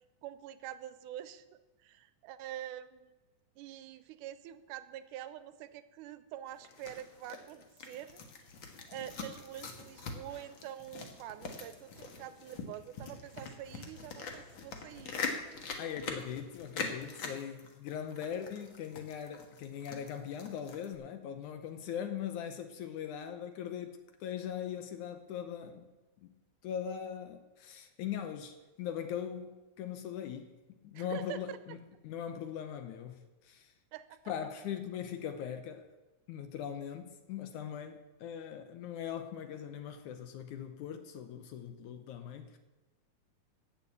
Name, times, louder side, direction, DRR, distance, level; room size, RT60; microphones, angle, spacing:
voice 1, 0.2-3.1 3.6-8.2 8.9-15.2 30.9-31.6 33.9-34.2, right 12 dB, 90° right, 2.2 m, -45 dB
sound 1, 6.5-20.9, left 4 dB, 50° left, 1.7 m, -43 dB
voice 2, 15.8-25.9 26.2-26.4 26.6-30.5 30.8-31.8 32.0-33.7 34.3-35.9 36.3-42.6, left 9 dB, 75° left, 2.3 m, -40 dB
13.0 x 6.9 x 8.5 m
omnidirectional pair, 3.6 m